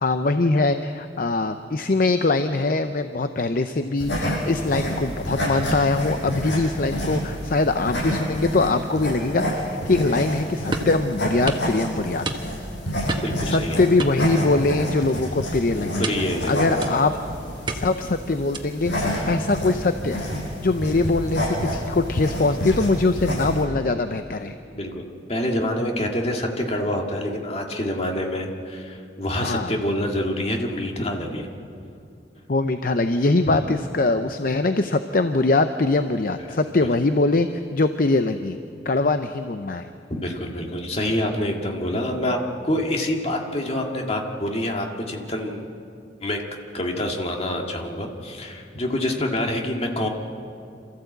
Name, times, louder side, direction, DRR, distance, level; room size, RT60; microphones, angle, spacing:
voice 1, 0.0-12.3 13.4-16.1 16.5-17.1 17.7-20.2 20.6-24.5 29.3-29.7 32.5-38.6 38.8-39.9, left 3 dB, 50° left, 9 dB, 0.6 m, -22 dB
sound 1, 4.0-23.6, equal, 75° left, 8.0 m, -29 dB
sound 2, 10.7-11.0 11.5-11.7 12.2-12.7 13.1-13.4 14.0-14.8 15.1-15.3 16.0-16.4 16.8-17.2 17.7-18.1 18.5-18.9, right 2 dB, 25° right, 1.2 m, -31 dB
voice 2, 13.2-13.8 16.0-16.7 24.7-31.5 33.5-33.6 40.1-42.4 42.6-45.7 46.2-46.4 46.7-50.1, left 1 dB, 35° left, 1 dB, 2.1 m, -26 dB
27.0 x 14.5 x 8.0 m, 2.5 s
head